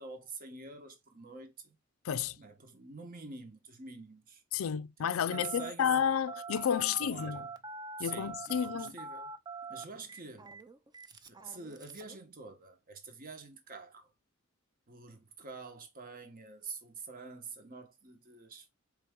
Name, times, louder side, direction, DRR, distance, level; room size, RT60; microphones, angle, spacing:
voice 1, 0.0-1.8 2.4-4.4 5.0-5.9 7.0-7.6 8.0-9.3 9.7-10.6 11.3-14.1 14.9-18.7, right 4 dB, 45° right, 1.1 m, -47 dB
voice 2, 2.0-2.4 4.5-7.4 8.0-8.9, left 8 dB, 85° left, 0.4 m, -31 dB
Telephone, 5.3-12.2, right 4 dB, 20° right, 0.5 m, -44 dB
4.5 x 3.4 x 3.5 m
head